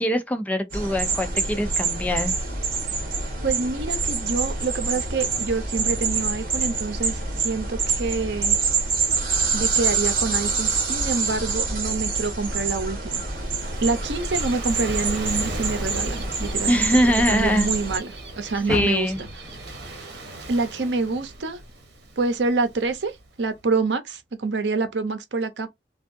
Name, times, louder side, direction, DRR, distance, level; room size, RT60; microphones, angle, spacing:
voice 1, 0.0-2.3 16.7-17.7 18.7-19.2, equal, 10° left, 0.4 m, -22 dB
sound 1, 0.7-18.0, right 4 dB, 50° right, 1.4 m, -26 dB
voice 2, 3.4-8.6 9.5-13.2 13.6-16.9 17.3-19.1 20.5-21.6 22.2-25.7, right 3 dB, 85° right, 0.7 m, -27 dB
Gull seagull / Waves surf, 12.9-23.5, right 2 dB, 70° right, 1.1 m, -38 dB
Car, 18.6-21.9 22.3-23.7 24.1-24.2 24.8-24.9, left 1 dB, 20° right, 1.0 m, -38 dB
3.5 x 2.3 x 2.6 m
head